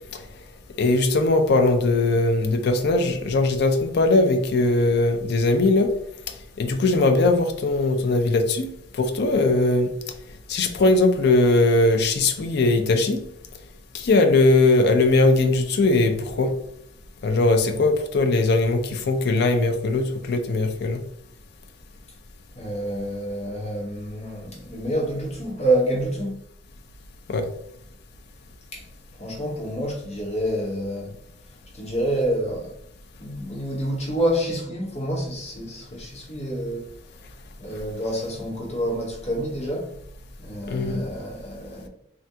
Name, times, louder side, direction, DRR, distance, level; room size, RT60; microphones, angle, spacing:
voice 1, 0.8-5.9 6.6-8.7 8.9-9.9 10.5-13.2 13.9-16.5 17.2-21.0 27.3-27.5 40.7-41.0, left 2 dB, 55° left, 0.4 m, -20 dB
voice 2, 22.5-26.4 28.7-28.8 29.1-31.1 31.7-32.7 33.2-37.0 37.6-39.9 40.4-41.9, right 1 dB, 35° left, 0.9 m, -28 dB
3.4 x 2.4 x 2.7 m
head